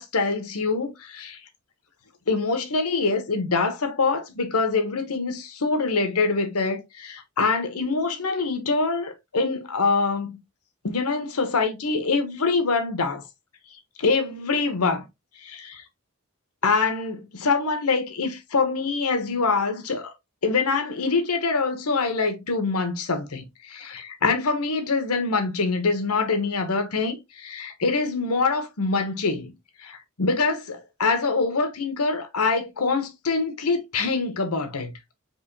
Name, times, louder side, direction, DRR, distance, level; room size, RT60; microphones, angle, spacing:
voice 1, 0.0-1.4 2.3-10.4 10.8-13.2 14.0-15.1 15.4-15.8 16.6-20.1 20.4-29.5 29.8-34.9, left 4 dB, 90° left, 1.0 m, -25 dB
4.8 x 3.1 x 2.7 m
head